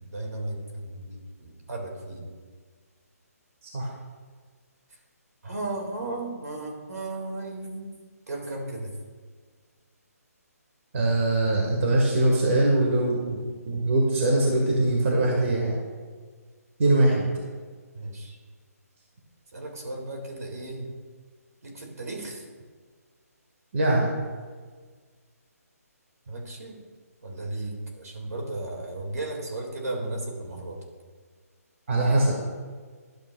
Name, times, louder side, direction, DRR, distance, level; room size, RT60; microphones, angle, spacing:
voice 1, 0.0-2.2 5.4-7.9 8.3-9.0 16.9-17.3 17.9-18.4 19.5-20.9 21.6-22.4 26.3-26.8 27.2-30.8, right 2 dB, 70° right, 0 dB, 2.0 m, -35 dB
voice 2, 10.9-13.4 13.6-15.7 16.8-17.2 23.7-24.1 31.9-32.3, right 2 dB, 50° right, -2 dB, 1.5 m, -22 dB
12.0 x 6.9 x 2.3 m, 1.6 s
figure-of-eight pair, 150°, 9 cm